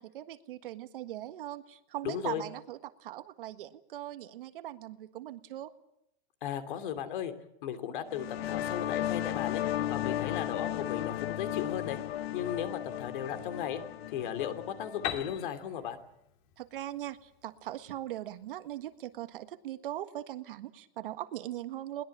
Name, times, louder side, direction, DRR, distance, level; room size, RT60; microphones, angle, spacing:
voice 1, 0.0-5.7 16.6-22.0, right 13 dB, 55° right, 9 dB, 1.7 m, -40 dB
voice 2, 2.0-2.4 6.4-7.3 7.6-9.6 9.9-12.0 12.3-13.8 14.1-16.0, left 9 dB, 50° left, 9 dB, 3.0 m, -36 dB
sound 1, 8.1-15.5, left 12 dB, 70° left, 1.2 m, -35 dB
Piano, 15.0-18.7, left 10 dB, 35° left, 2.4 m, -41 dB
22.0 x 20.5 x 8.7 m, 0.80 s
supercardioid pair, 165°, 32 cm